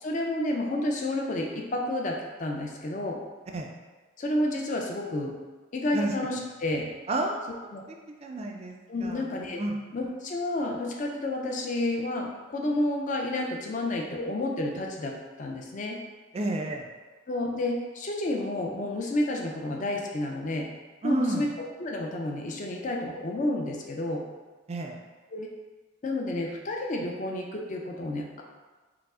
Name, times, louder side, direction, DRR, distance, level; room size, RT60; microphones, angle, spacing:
voice 1, 0.0-3.2 4.2-5.3 5.7-6.8 7.7-7.8 8.9-9.6 9.9-16.0 17.3-20.7 21.0-24.2 25.3-25.5 26.0-28.4, left 1 dB, 35° left, 0 dB, 0.5 m, -30 dB
voice 2, 7.1-7.7 8.2-8.7 9.0-9.3 9.6-9.8 16.3-16.9 21.0-21.4 24.7-25.0, right 2 dB, 30° right, 2 dB, 0.3 m, -30 dB
4.7 x 2.0 x 3.6 m, 1.3 s
head